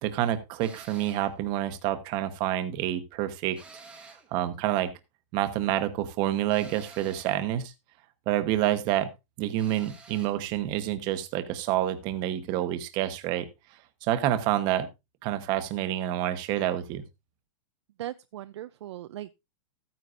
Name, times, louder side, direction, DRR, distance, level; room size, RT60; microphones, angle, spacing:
voice 1, 0.0-3.6 4.3-4.9 5.3-7.7 8.3-9.1 9.4-13.5 14.0-14.9 15.2-17.0, right 12 dB, 25° right, 1.0 m, -28 dB
sound 1, 0.6-1.3 3.5-4.3 6.5-7.4 9.6-10.4, right 4 dB, 5° right, 1.2 m, -50 dB
voice 2, 18.0-19.3, right 13 dB, 55° right, 0.5 m, -38 dB
14.0 x 9.5 x 2.5 m
supercardioid pair, 175°, 18 cm